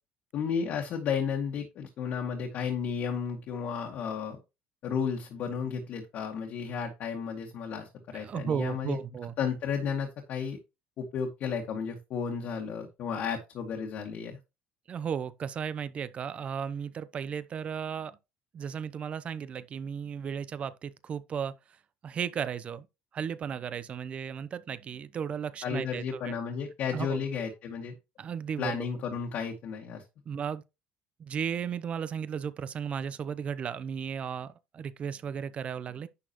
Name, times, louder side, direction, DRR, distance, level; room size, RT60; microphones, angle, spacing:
voice 1, 0.3-4.4 4.8-9.0 9.4-10.6 11.0-14.4 25.6-27.9 28.6-30.0, left 6 dB, 60° left, 2.1 m, -33 dB
voice 2, 8.2-9.3 14.9-18.2 18.5-21.5 22.0-22.9 23.1-26.3 26.9-27.3 28.2-28.9 30.3-30.6 31.2-36.1, right 7 dB, 40° right, 0.8 m, -35 dB
11.0 x 6.2 x 3.0 m
cardioid pair, 125°, 3 cm